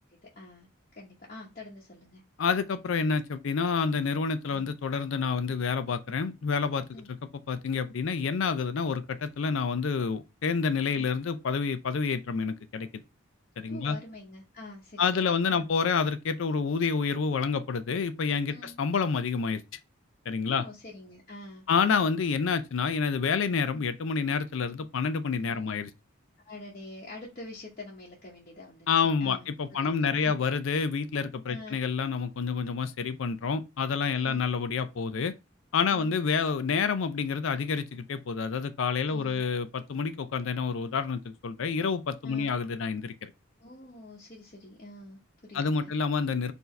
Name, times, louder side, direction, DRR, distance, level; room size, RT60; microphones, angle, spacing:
voice 1, 0.2-0.7 0.9-2.2 6.9-7.1 10.9-11.1 13.7-15.7 18.5-18.8 20.5-21.6 25.4-25.8 26.4-28.9 29.2-29.5 29.8-30.3 31.5-31.8 34.2-34.4 35.9-36.1 39.1-39.4 42.2-42.5 43.6-45.9, left 2 dB, 40° left, 1.0 m, -46 dB
voice 2, 2.4-7.2 7.5-12.9 13.6-14.0 15.0-19.6 20.3-20.6 21.7-25.9 28.9-35.3 35.7-43.3 45.5-46.5, left 5 dB, 65° left, 0.4 m, -28 dB
4.6 x 2.7 x 3.2 m
head